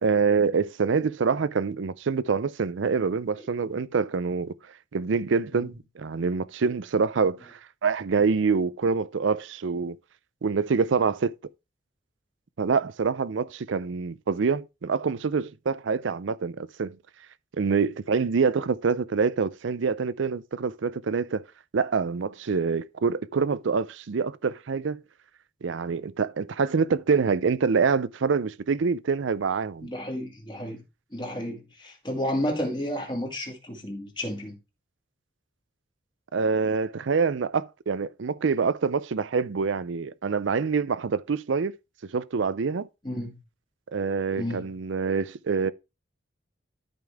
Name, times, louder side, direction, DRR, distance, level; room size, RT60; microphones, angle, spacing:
voice 1, 0.0-4.5 4.9-10.0 10.4-11.3 12.6-17.0 17.6-21.4 21.7-25.0 25.6-29.9 36.3-41.7 42.1-42.9 43.9-45.7, right 5 dB, 75° right, 0.5 m, -26 dB
voice 2, 29.8-30.8 31.1-34.6 43.0-43.4 44.4-44.7, equal, 25° left, 2.2 m, -32 dB
12.5 x 5.3 x 3.5 m
head